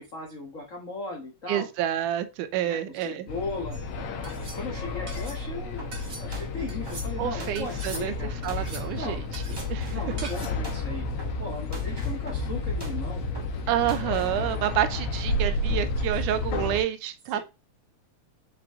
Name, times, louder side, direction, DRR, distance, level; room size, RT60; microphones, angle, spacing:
voice 1, 0.0-1.7 2.6-3.8 4.2-8.3 9.0-9.2 9.9-11.1 11.4-13.2 17.3-17.4, left 3 dB, 80° left, 0.7 m, -37 dB
voice 2, 1.5-3.3 7.2-8.1 8.4-9.4 9.7-10.0 13.7-17.5, right 11 dB, 80° right, 2.1 m, -28 dB
sound 1, 3.3-16.8, left 2 dB, 60° left, 1.7 m, -31 dB
sound 2, 3.7-3.8 4.2-4.6 5.1-5.4 5.9-6.2 6.7-7.1 7.5-8.1 8.4-8.9 9.3-9.7 10.2-10.6, right 3 dB, 40° right, 1.2 m, -41 dB
sound 3, 5.8-14.4, equal, 15° right, 1.0 m, -45 dB
6.1 x 4.8 x 3.6 m
omnidirectional pair, 3.7 m